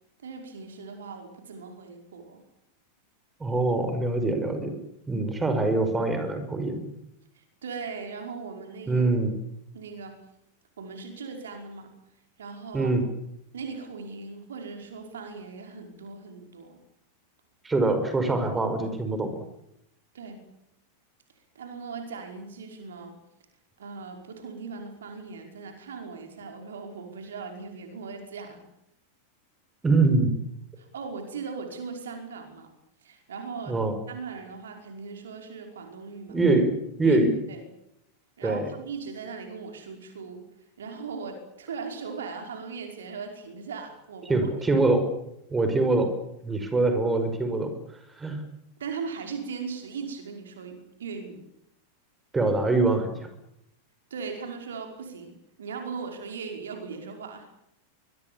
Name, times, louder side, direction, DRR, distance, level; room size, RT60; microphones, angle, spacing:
voice 1, 0.2-2.4 7.4-9.0 9.7-10.2 10.8-11.9 12.4-13.0 13.5-16.8 20.1-20.4 21.6-23.2 23.8-28.6 30.8-32.7 33.0-33.8 34.1-36.4 37.0-37.2 37.5-37.7 38.4-40.4 40.8-44.7 48.8-51.4 54.1-57.5, right 5 dB, 65° right, 5 dB, 5.3 m, -39 dB
voice 2, 3.4-4.7 5.1-6.9 8.9-9.4 12.7-13.0 17.6-19.3 29.8-30.3 33.7-33.9 36.3-36.7 37.0-37.3 38.4-38.7 44.3-45.1 45.5-46.1 46.4-47.7 48.2-48.4 52.3-53.1, right 2 dB, 15° right, 8 dB, 5.6 m, -24 dB
25.0 x 23.0 x 7.2 m, 0.79 s
figure-of-eight pair, 90°, 0 cm